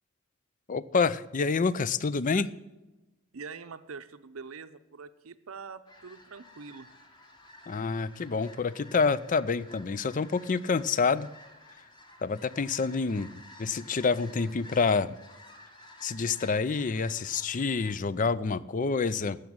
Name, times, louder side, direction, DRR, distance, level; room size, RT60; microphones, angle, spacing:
voice 1, 0.7-2.5 7.7-11.3 12.2-13.3 13.6-15.2 16.0-19.4, left 4 dB, 40° left, 17 dB, 0.5 m, -27 dB
voice 2, 3.3-6.9, right 5 dB, 90° right, 12 dB, 0.7 m, -44 dB
sound 1, 5.9-17.9, left 1 dB, 20° left, 1.6 m, -53 dB
12.5 x 8.2 x 8.7 m, 1.0 s
head